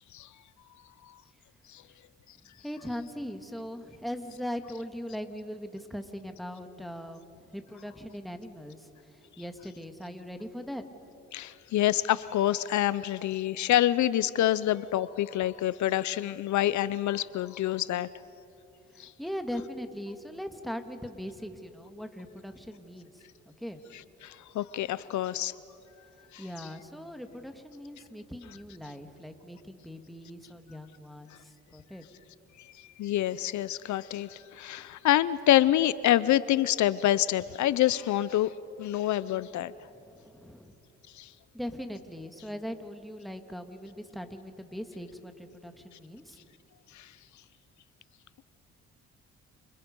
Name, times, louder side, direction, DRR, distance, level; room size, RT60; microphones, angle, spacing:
voice 1, 2.6-7.3 7.5-10.8 18.9-23.8 26.4-32.0 39.8-40.7 41.5-46.4, equal, ahead, 6 dB, 2.1 m, -40 dB
voice 2, 11.3-18.1 19.0-19.1 24.2-25.5 26.3-26.4 33.0-38.5 38.8-39.7 41.2-41.3 46.9-47.1, left 13 dB, 70° left, 17 dB, 0.6 m, -26 dB
29.5 x 28.0 x 5.4 m, 3.0 s
cardioid pair, 90°, 30 cm